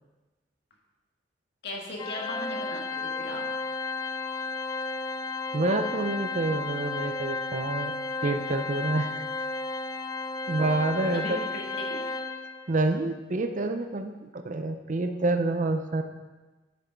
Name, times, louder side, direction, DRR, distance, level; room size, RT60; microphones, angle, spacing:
voice 1, 1.6-3.5 11.1-11.6 11.9-12.1, left 1 dB, 60° left, -1 dB, 1.7 m, -37 dB
Organ, 2.0-12.7, left 3 dB, 20° left, 0.3 m, -33 dB
voice 2, 5.5-7.9 8.2-9.3 10.5-11.4 12.7-16.0, right 2 dB, 40° right, 7 dB, 0.5 m, -28 dB
10.5 x 6.1 x 4.5 m, 1.2 s
head